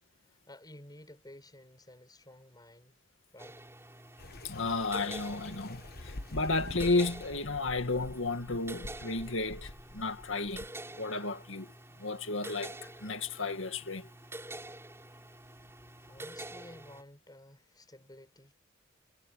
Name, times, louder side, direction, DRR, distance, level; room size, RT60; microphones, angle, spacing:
voice 1, 0.3-3.0 3.3-3.6 15.8-18.5, left 1 dB, 20° left, 6.6 m, -53 dB
sound 1, 3.4-17.0, right 1 dB, 15° right, 5.5 m, -47 dB
sound 2, 4.2-10.7, left 1 dB, 55° left, 1.3 m, -46 dB
voice 2, 4.4-10.7 11.0-11.7 12.0-14.1, left 3 dB, 80° left, 2.1 m, -33 dB
head